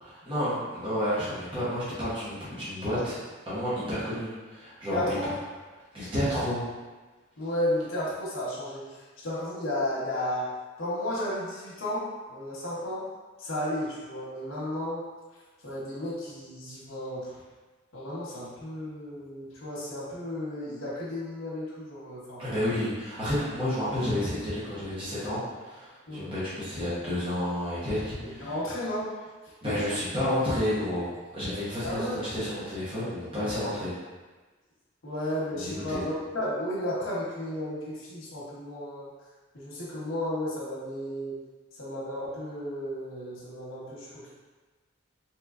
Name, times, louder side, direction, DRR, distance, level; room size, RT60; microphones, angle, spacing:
voice 1, 0.0-3.2 3.5-5.3 5.9-6.6 22.4-28.5 29.6-34.0 35.6-36.0, left 1 dB, 25° right, -11 dB, 0.9 m, -30 dB
voice 2, 4.9-5.3 7.4-8.8 9.2-10.5 10.8-12.0 12.3-13.0 13.4-15.0 15.6-17.3 17.9-22.4 26.1-26.4 28.4-29.1 31.8-32.2 35.0-39.1 39.5-41.4 41.8-44.3, left 1 dB, 75° left, -6 dB, 1.0 m, -33 dB
3.6 x 3.0 x 2.4 m, 1.3 s
head